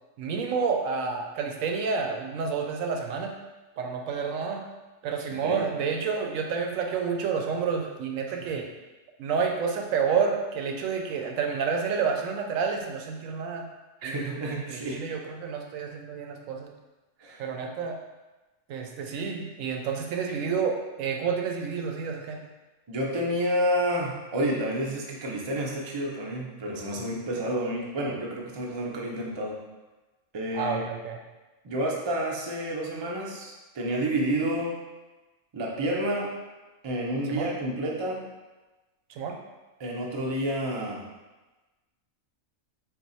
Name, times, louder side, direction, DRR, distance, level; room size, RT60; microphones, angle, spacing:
voice 1, 0.2-3.4 3.8-4.7 5.0-8.6 9.2-13.7 14.0-16.7 17.4-18.0 18.7-22.4 30.5-31.2 37.3-37.5 39.1-39.4, right 5 dB, 80° right, 3 dB, 1.0 m, -29 dB
voice 2, 14.0-15.0 17.2-17.4 22.9-29.6 30.3-30.8 31.6-34.8 35.5-36.4 36.8-38.3 39.8-41.0, right 1 dB, 40° right, -2 dB, 0.3 m, -29 dB
3.9 x 2.5 x 4.0 m, 1.2 s
omnidirectional pair, 1.4 m